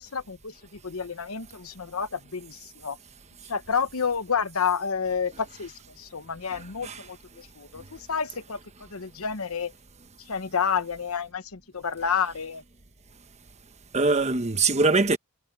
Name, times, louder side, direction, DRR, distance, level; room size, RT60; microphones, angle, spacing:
voice 1, 0.0-3.0 3.5-9.7 10.2-12.6, left 6 dB, 85° left, 1.1 m, -30 dB
voice 2, 6.5-7.0 13.9-15.2, right 3 dB, 30° right, 1.1 m, -23 dB
head